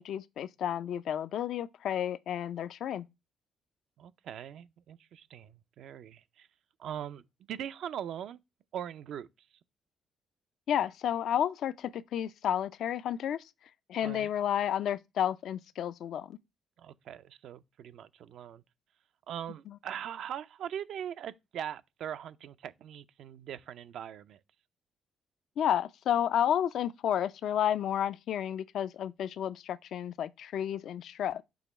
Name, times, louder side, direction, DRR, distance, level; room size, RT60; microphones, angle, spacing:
voice 1, 0.0-3.1 10.7-13.4 13.9-16.4 19.7-19.8 25.6-31.4, left 10 dB, 75° left, 0.4 m, -31 dB
voice 2, 4.0-6.5 6.8-7.2 7.5-8.4 8.7-9.3 14.0-14.3 16.8-18.6 19.3-24.4, right 9 dB, 75° right, 0.4 m, -41 dB
6.3 x 3.0 x 5.8 m
cardioid pair, 90°, 0 cm